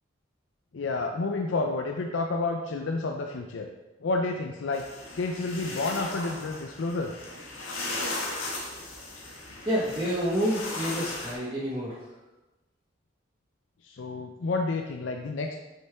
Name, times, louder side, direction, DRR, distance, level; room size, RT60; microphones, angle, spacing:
voice 1, 0.7-3.7 4.0-4.8 5.1-7.1 13.8-15.6, left 3 dB, 75° left, 3 dB, 0.5 m, -30 dB
sound 1, 4.7-11.3, left 2 dB, 90° left, 1.5 m, -37 dB
voice 2, 9.6-12.0, equal, 20° right, -8 dB, 1.1 m, -28 dB
6.5 x 5.4 x 3.5 m, 1.1 s
head